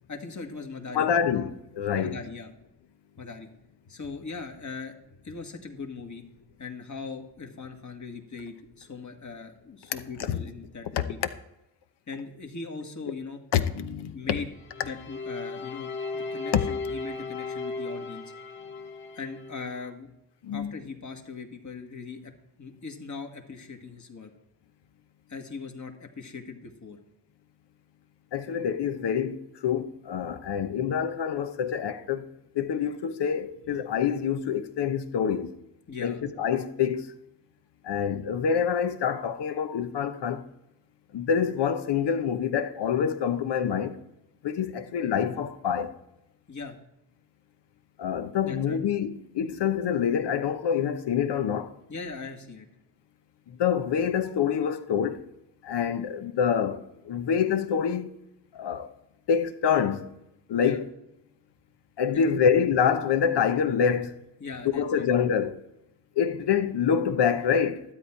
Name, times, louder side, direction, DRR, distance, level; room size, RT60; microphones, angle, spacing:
voice 1, 0.1-1.1 1.8-2.5 3.2-3.5 3.8-5.0 5.2-6.2 6.6-11.2 12.1-13.4 14.1-14.5 14.8-18.2 19.1-20.1 20.5-22.3 22.6-24.3 25.3-27.0 33.7-33.8 35.9-36.2 46.5-46.8 48.4-48.8 51.9-52.7 60.6-60.8 62.1-62.5 64.4-65.1, left 4 dB, 40° left, 1.8 m, -40 dB
voice 2, 0.9-2.2 10.3-10.4 11.0-11.1 13.5-14.1 16.5-16.6 20.4-20.7 28.3-32.3 32.5-35.5 36.0-37.1 37.8-40.4 41.1-44.0 44.4-45.9 48.0-51.7 53.5-55.2 55.6-58.1 58.5-58.9 59.3-60.1 60.5-60.9 62.0-64.1 64.7-65.6 66.2-67.8, left 7 dB, 65° left, 1.0 m, -26 dB
sound 1, 14.7-19.9, left 4 dB, 90° left, 1.1 m, -36 dB
12.5 x 8.5 x 4.5 m
supercardioid pair, 55°, 45 cm